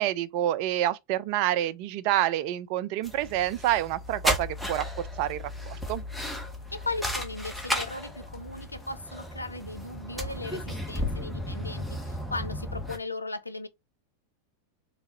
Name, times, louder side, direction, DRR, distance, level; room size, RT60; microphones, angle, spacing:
voice 1, 0.0-6.0, right 13 dB, 45° right, 0.3 m, -28 dB
sound 1, 3.0-13.0, left 1 dB, ahead, 0.9 m, -34 dB
voice 2, 6.7-13.7, left 2 dB, 80° left, 0.4 m, -37 dB
3.6 x 2.7 x 2.9 m
figure-of-eight pair, 90°, 0 cm